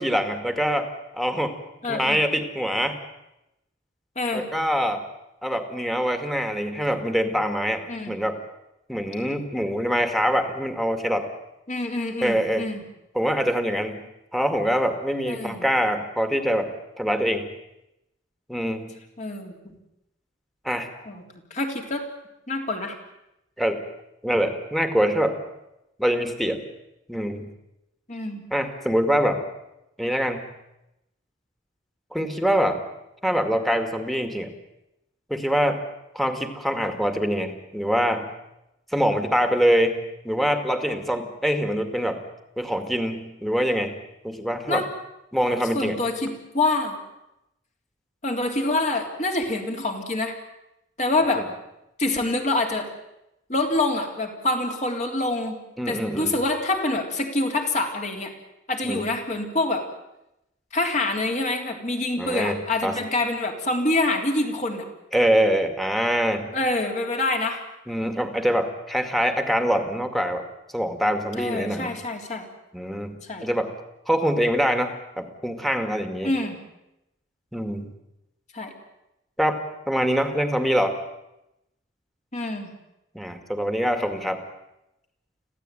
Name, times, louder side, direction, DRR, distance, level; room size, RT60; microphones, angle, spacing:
voice 1, 0.0-1.6 1.9-3.0 4.3-5.0 5.4-8.4 8.9-11.3 12.2-12.7 13.1-14.0 14.3-17.5 18.5-18.9 20.6-20.9 23.6-23.8 24.2-25.4 26.0-26.6 27.1-27.5 28.5-29.4 30.0-30.4 32.1-32.8 33.2-34.5 35.3-35.8 36.1-38.3 38.9-40.0 40.2-42.2 42.6-43.9 44.2-44.9 45.3-46.0 55.8-56.4 58.8-59.0 62.2-62.6 62.8-63.0 65.1-66.5 67.9-70.4 70.7-72.0 72.7-73.7 74.1-76.3 77.5-77.9 79.4-79.6 79.9-81.0 83.1-84.4, equal, ahead, 7 dB, 2.1 m, -24 dB
voice 2, 1.8-2.2 4.2-4.4 7.9-8.1 11.7-12.8 15.3-15.7 19.2-19.6 21.1-21.2 21.5-22.0 22.5-23.0 28.1-28.4 44.7-44.9 45.7-47.0 48.2-50.4 51.0-51.4 52.0-52.9 53.5-55.6 55.9-58.3 58.7-59.8 60.7-64.8 66.5-67.6 71.4-72.5 73.3-73.5 76.2-76.6 78.5-78.7 82.3-82.7, left 2 dB, 40° left, 3 dB, 3.5 m, -26 dB
26.0 x 16.0 x 9.1 m, 0.89 s
head